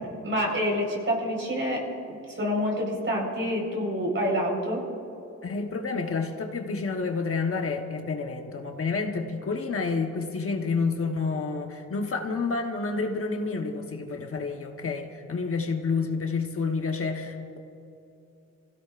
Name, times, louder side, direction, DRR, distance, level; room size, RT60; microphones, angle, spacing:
voice 1, 0.0-1.8 2.1-4.8, equal, 45° right, -1 dB, 4.4 m, -27 dB
voice 2, 5.4-17.6, left 4 dB, 50° left, 3 dB, 1.1 m, -29 dB
28.5 x 16.0 x 2.5 m, 2.8 s
wide cardioid pair, 140°, 29 cm